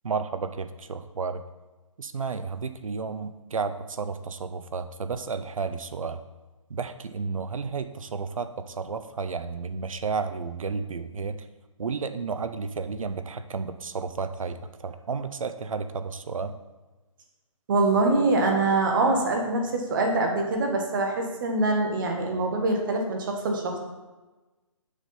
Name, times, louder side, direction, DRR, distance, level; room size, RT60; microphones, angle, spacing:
voice 1, 0.0-1.4 2.0-6.2 6.7-11.4 11.8-16.5, right 5 dB, 75° right, 10 dB, 0.7 m, -32 dB
voice 2, 17.7-23.8, right 2 dB, 40° right, 2 dB, 1.3 m, -24 dB
6.6 x 5.1 x 5.5 m, 1.2 s
hypercardioid pair, 155°, 17 cm